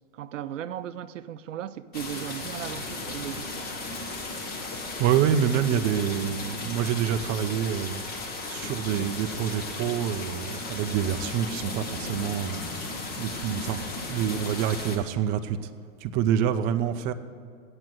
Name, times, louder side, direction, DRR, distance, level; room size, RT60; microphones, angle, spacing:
voice 1, 0.1-3.8, right 10 dB, 85° right, 0.6 m, -37 dB
sound 1, 1.9-15.0, left 3 dB, 25° left, 1.4 m, -35 dB
voice 2, 5.0-15.7 16.0-17.1, right 9 dB, 25° right, 0.4 m, -27 dB
8.8 x 7.6 x 9.1 m
hypercardioid pair, 125°, 37 cm